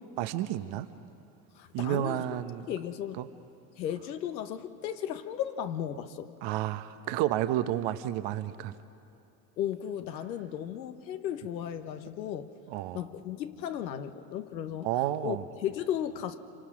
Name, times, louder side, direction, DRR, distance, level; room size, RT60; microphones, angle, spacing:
voice 1, 0.2-0.9 1.7-2.7 3.2-3.3 6.4-8.7 12.7-13.0 14.8-15.4, right 13 dB, 60° right, 11 dB, 1.1 m, -31 dB
voice 2, 1.6-2.2 2.7-3.3 3.8-6.3 9.6-12.5 12.9-14.9 15.2-16.4, left 10 dB, 85° left, 9 dB, 1.2 m, -35 dB
27.0 x 25.0 x 6.0 m, 2.7 s
hypercardioid pair, 70°, 50 cm